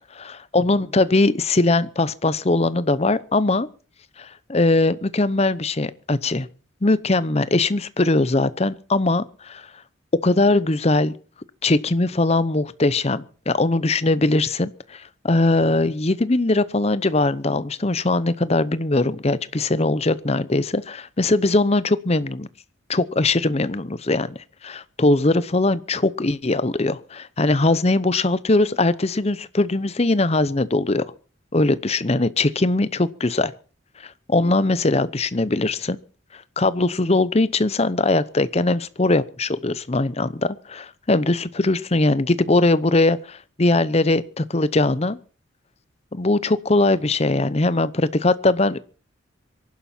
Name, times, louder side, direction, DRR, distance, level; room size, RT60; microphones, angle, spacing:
voice 1, 0.2-3.7 4.2-6.5 6.8-9.7 10.1-11.1 11.6-22.5 22.9-24.4 24.6-31.0 31.5-33.5 34.3-36.0 36.6-45.2 46.1-48.8, left 2 dB, 30° left, 0.8 m, -21 dB
25.0 x 11.5 x 4.4 m
head